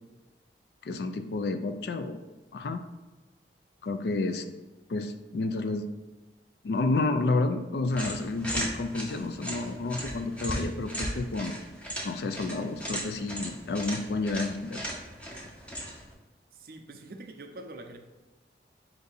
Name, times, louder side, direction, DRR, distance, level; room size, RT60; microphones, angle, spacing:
voice 1, 0.8-2.2 2.5-2.8 3.8-4.4 4.9-5.9 6.6-11.5 12.0-14.9, left 3 dB, 65° left, 8 dB, 0.3 m, -30 dB
sound 1, 7.9-16.1, equal, 5° left, 0.6 m, -37 dB
voice 2, 16.5-18.0, right 2 dB, 50° right, 5 dB, 0.5 m, -44 dB
4.5 x 2.7 x 4.0 m, 1.2 s
head